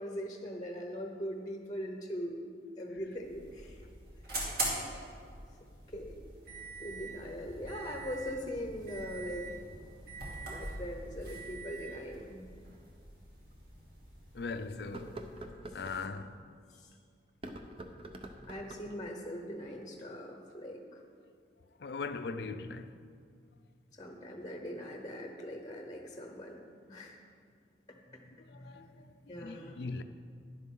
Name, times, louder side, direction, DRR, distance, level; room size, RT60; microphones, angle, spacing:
voice 1, 0.0-2.5 2.8-3.8 5.9-6.3 6.8-9.7 10.4-12.4 18.5-20.8 24.0-26.6 26.9-27.1 28.1-28.2 28.5-28.8 29.3-29.7, equal, 20° left, 0.8 m, -41 dB
Interior Prius Start w beeps some fan noise, 3.1-15.5, right 2 dB, 55° right, 2.6 m, -43 dB
sound 1, 12.8-12.9 13.5-13.6 14.8-16.0 17.3-19.0, right 1 dB, 30° right, 0.7 m, -46 dB
voice 2, 14.3-15.2 15.7-16.4 21.8-23.0 28.5-30.0, left 4 dB, 60° left, 0.5 m, -40 dB
11.5 x 10.5 x 3.8 m
head